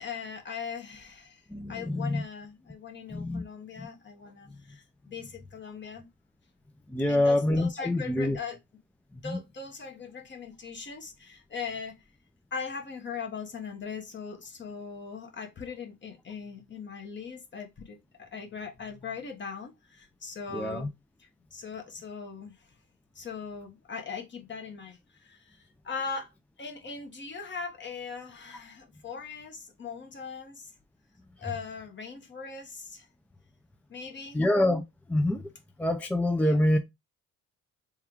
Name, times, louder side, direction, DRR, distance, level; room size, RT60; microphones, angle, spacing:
voice 1, 0.0-1.4 1.7-6.1 7.1-8.6 9.2-12.0 12.5-20.9 21.2-22.7 23.1-26.3 26.6-30.7 31.4-33.1 33.9-34.4 36.4-36.6, left 5 dB, 40° left, 1.1 m, -40 dB
voice 2, 1.5-2.2 3.1-3.4 3.8-3.9 6.9-8.4 9.2-9.4 20.5-20.9 34.3-34.8 35.1-35.4 35.8-36.8, left 1 dB, 5° left, 0.4 m, -26 dB
3.5 x 2.4 x 4.4 m
cardioid pair, 90°, 30 cm